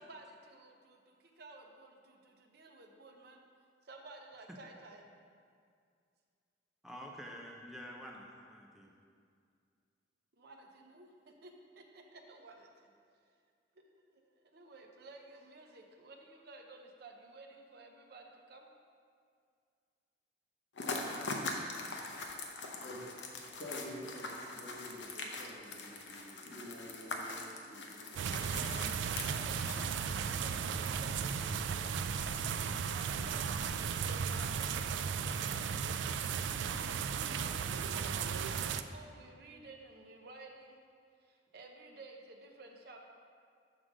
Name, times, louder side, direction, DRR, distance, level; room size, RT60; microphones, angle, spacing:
voice 1, 0.0-3.4 3.8-5.0 10.4-12.9 13.7-18.7 28.2-31.9 32.7-36.0 37.2-40.8 41.2-43.0, right 2 dB, 60° right, 2 dB, 0.7 m, -54 dB
voice 2, 6.8-8.9, equal, ahead, -2 dB, 0.5 m, -48 dB
sound 1, 20.7-30.5, left 3 dB, 75° left, 0.7 m, -42 dB
voice 3, 23.6-28.4 37.2-37.6, equal, 55° left, -4 dB, 1.5 m, -49 dB
sound 2, 28.1-38.8, right 6 dB, 80° right, 0.3 m, -35 dB
6.3 x 3.8 x 6.2 m, 2.2 s
head